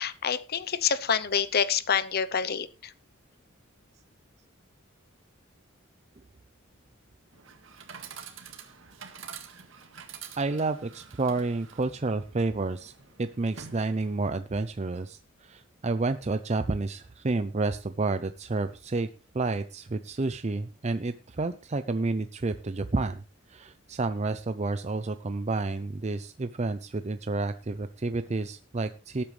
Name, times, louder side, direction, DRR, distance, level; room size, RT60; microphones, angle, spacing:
voice 1, 0.0-2.9, left 7 dB, 50° left, 16 dB, 0.7 m, -27 dB
Chatter / Coin (dropping), 7.3-14.3, right 7 dB, 70° right, 1.9 m, -47 dB
voice 2, 10.4-12.9 13.2-19.1 19.3-23.2 23.5-29.2, right 3 dB, 35° right, 10 dB, 0.5 m, -30 dB
18.5 x 8.6 x 3.3 m, 0.34 s
head